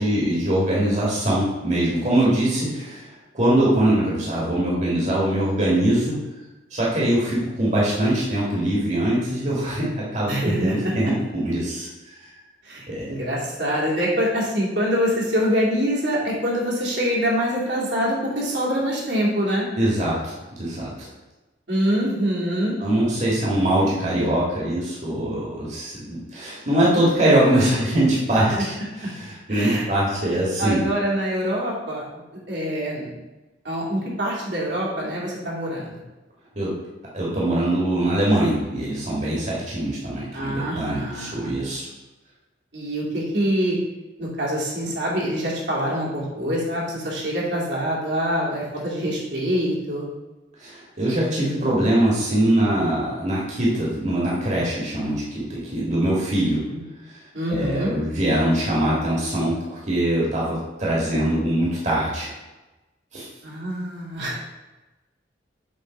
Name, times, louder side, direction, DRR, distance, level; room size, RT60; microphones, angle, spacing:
voice 1, 0.0-3.1 3.3-6.2 6.7-11.9 12.9-13.1 19.8-21.1 22.8-30.8 36.5-36.7 37.1-41.9 50.6-55.2 55.5-56.6 57.5-62.3 63.1-63.3, right 1 dB, 40° right, -5 dB, 1.7 m, -22 dB
voice 2, 10.3-10.9 12.6-19.7 21.7-22.7 27.6-27.7 28.4-28.7 29.0-29.1 29.5-29.9 30.6-32.0 32.5-33.1 33.6-35.9 40.3-41.6 42.7-43.8 44.2-50.1 56.7-56.8 57.3-57.9 63.4-64.4, equal, 70° right, -5 dB, 2.2 m, -25 dB
7.4 x 3.7 x 5.2 m, 1.1 s
head